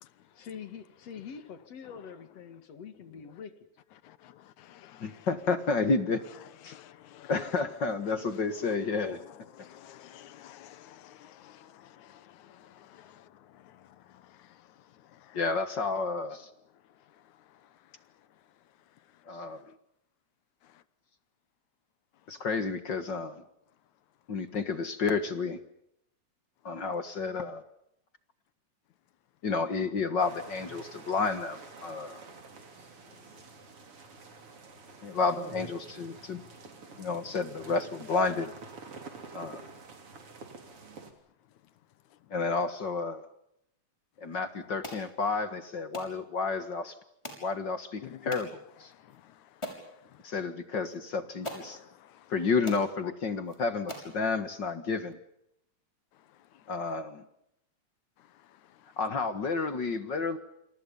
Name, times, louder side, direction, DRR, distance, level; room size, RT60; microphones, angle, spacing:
voice 1, 0.3-3.7, left 7 dB, 60° left, 3.0 m, -45 dB
voice 2, 4.0-5.3 6.7-7.6 8.0-8.8 9.1-15.4 17.1-17.8 19.6-19.7 20.6-20.8 33.1-33.2 48.0-48.4 48.9-50.3 51.6-52.3 53.0-53.1 56.3-56.7 58.2-59.0, left 12 dB, 80° left, 2.5 m, -52 dB
voice 3, 5.0-6.2 6.6-6.7 7.3-9.2 15.3-16.5 19.3-19.6 22.3-23.4 24.3-25.6 26.6-27.6 29.4-32.2 35.0-36.4 37.0-38.5 39.3-39.6 42.3-43.3 44.2-46.9 47.4-48.9 50.2-51.8 52.3-55.2 56.7-57.2 59.0-60.4, left 4 dB, 45° left, 2.0 m, -31 dB
sound 1, 30.2-41.1, right 4 dB, 50° right, 4.1 m, -48 dB
sound 2, 44.8-45.0 45.9-46.1 47.2-47.5 48.3-48.5 49.1-49.2 49.6-49.9 50.9-51.0 51.4-51.7 52.3-52.4 52.7-52.9 53.5-53.6 53.9-54.1, left 1 dB, 10° left, 6.2 m, -40 dB
28.5 x 27.5 x 5.5 m
omnidirectional pair, 3.3 m